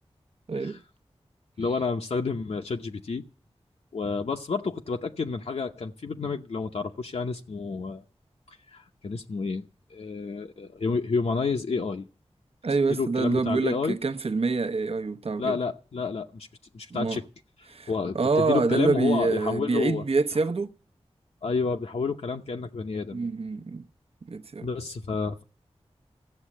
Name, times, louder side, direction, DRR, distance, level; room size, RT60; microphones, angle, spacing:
voice 1, 0.5-0.8 12.6-15.6 16.9-17.2 17.7-20.8 23.1-23.8 24.3-24.7, right 4 dB, 65° right, 0.9 m, -26 dB
voice 2, 1.6-3.2 3.9-8.0 8.7-12.1 12.9-14.0 15.4-16.5 16.7-17.2 17.9-20.0 21.4-23.3 24.6-25.4, left 4 dB, 70° left, 0.8 m, -30 dB
15.5 x 7.4 x 9.9 m
wide cardioid pair, 70°, 11 cm